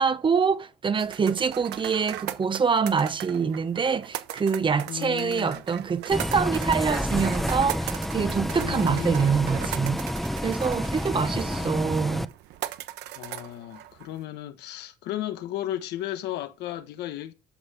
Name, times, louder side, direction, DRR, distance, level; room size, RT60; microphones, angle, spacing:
voice 1, 0.0-10.0 10.4-12.2, right 6 dB, 30° right, 1.1 m, -25 dB
sound 1, 1.0-14.2, right 14 dB, 90° right, 1.0 m, -39 dB
voice 2, 4.8-5.6 8.5-9.3 11.1-11.9 13.1-17.3, left 13 dB, 80° left, 1.3 m, -35 dB
Bus, 6.1-12.3, equal, ahead, 0.8 m, -29 dB
13.5 x 5.7 x 6.7 m
cardioid pair, 110°, 17 cm